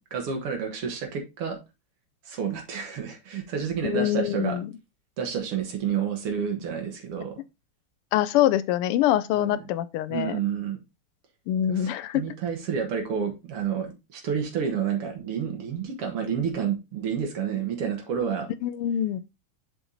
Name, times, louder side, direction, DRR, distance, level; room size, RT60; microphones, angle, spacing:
voice 1, 0.1-1.6 2.3-4.6 5.2-7.3 9.4-9.6 10.1-10.8 11.7-18.5, right 7 dB, 90° right, 2.4 m, -29 dB
voice 2, 3.8-4.7 8.1-10.4 11.5-12.2 18.6-19.2, left 12 dB, 90° left, 1.6 m, -24 dB
7.1 x 4.5 x 3.9 m
omnidirectional pair, 2.4 m